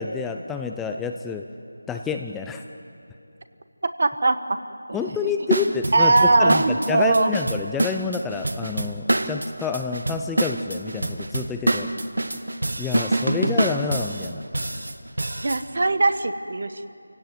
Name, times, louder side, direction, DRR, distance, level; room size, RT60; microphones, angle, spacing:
voice 1, 0.0-1.4 1.9-2.6 4.9-11.9 12.8-14.4, left 5 dB, 5° left, 4 dB, 0.5 m, -28 dB
voice 2, 4.0-4.4 4.9-5.0 5.9-7.3 13.1-13.3 15.4-16.9, right 2 dB, 50° right, 11 dB, 1.2 m, -20 dB
sound 1, 5.5-15.6, right 1 dB, 80° right, 1.6 m, -25 dB
26.0 x 17.0 x 9.4 m, 2.6 s
figure-of-eight pair, 170°, 0 cm